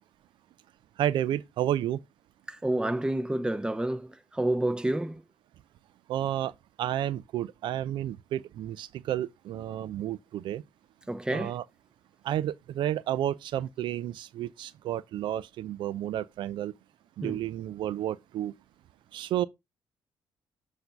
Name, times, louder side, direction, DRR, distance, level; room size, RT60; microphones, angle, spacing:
voice 1, 1.0-2.0 6.1-6.5 6.8-10.6 11.3-11.6 12.2-16.7 17.2-18.5 19.1-19.4, right 12 dB, 70° right, 0.4 m, -31 dB
voice 2, 2.5-5.2 11.1-11.5 17.2-17.4, right 1 dB, 10° right, 0.8 m, -29 dB
7.8 x 2.7 x 5.7 m
cardioid pair, 80°, 8 cm